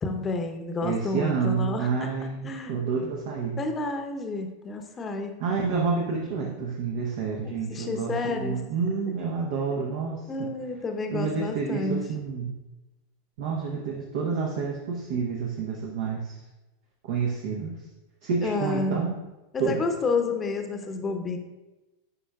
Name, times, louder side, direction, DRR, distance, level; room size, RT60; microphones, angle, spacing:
voice 1, 0.0-2.1 2.4-2.7 3.6-5.3 7.4-8.6 10.3-12.1 18.4-19.0 19.5-21.4, left 3 dB, 25° left, 5 dB, 0.8 m, -30 dB
voice 2, 0.8-3.6 5.4-10.5 11.1-12.5 13.4-16.3 17.1-17.7 18.2-19.2 19.6-19.8, right 5 dB, 55° right, -1 dB, 0.9 m, -29 dB
9.7 x 5.3 x 2.4 m, 1.1 s
figure-of-eight pair, 90°, 0 cm